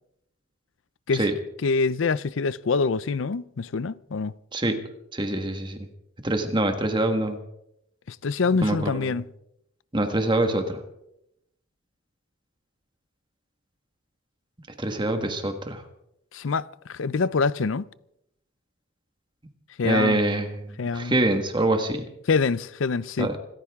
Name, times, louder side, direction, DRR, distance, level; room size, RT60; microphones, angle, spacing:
voice 1, 1.6-4.3 8.1-9.3 16.3-17.9 19.8-20.2 20.8-21.1 22.3-23.3, left 4 dB, 70° left, 0.5 m, -25 dB
voice 2, 5.1-5.8 6.2-7.4 8.6-9.1 9.9-10.8 14.8-15.8 19.8-22.1 23.2-23.3, right 1 dB, 25° right, 1.6 m, -25 dB
26.0 x 14.5 x 3.6 m
head